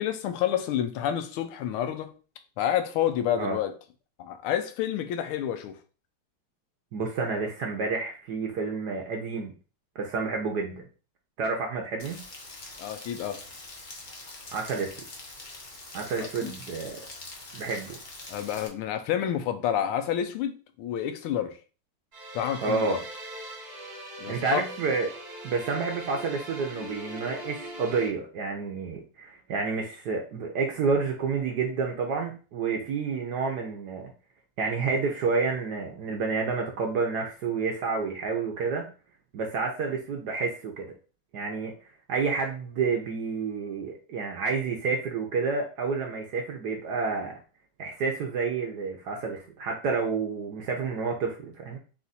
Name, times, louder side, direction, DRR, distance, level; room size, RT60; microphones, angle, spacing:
voice 1, 0.0-2.1 2.6-3.7 4.2-5.7 12.8-13.4 16.4-16.5 18.3-21.6 22.3-23.0 24.2-24.7, left 10 dB, 80° left, 1.4 m, -29 dB
voice 2, 6.9-9.5 10.0-10.8 11.4-12.2 14.5-14.9 15.9-17.0 17.5-18.0 22.6-23.0 24.3-25.1 25.4-34.1 34.6-38.9 39.3-40.9 41.3-41.7 42.1-47.3 47.8-51.8, right 4 dB, 70° right, 1.0 m, -29 dB
Rain, 12.0-18.7, left 2 dB, 65° left, 0.4 m, -44 dB
sound 1, 22.1-28.1, right 1 dB, 35° right, 1.1 m, -41 dB
4.3 x 2.5 x 4.0 m
omnidirectional pair, 2.4 m